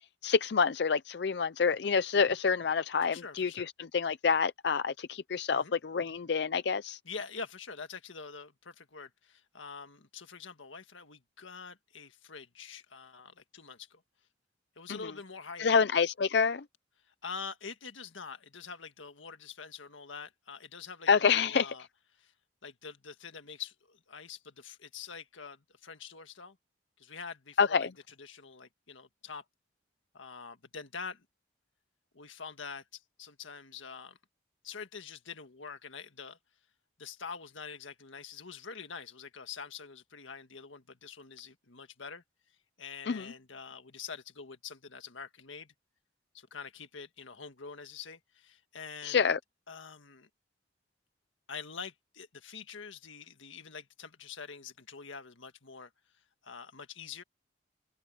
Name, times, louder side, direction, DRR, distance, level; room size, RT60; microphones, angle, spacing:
voice 1, 0.0-7.0 15.6-16.6 21.1-21.7 27.6-27.9 43.1-43.3 49.0-49.4, left 5 dB, 60° left, 0.5 m, -27 dB
voice 2, 3.1-3.7 5.5-5.8 7.1-14.0 14.8-15.8 17.0-21.9 22.2-22.3 22.6-26.6 27.0-27.9 28.2-29.5 30.1-31.3 32.1-34.2 34.6-36.4 37.0-45.7 46.3-49.2 49.7-50.3 51.5-57.2, left 5 dB, 85° left, 1.8 m, -45 dB
head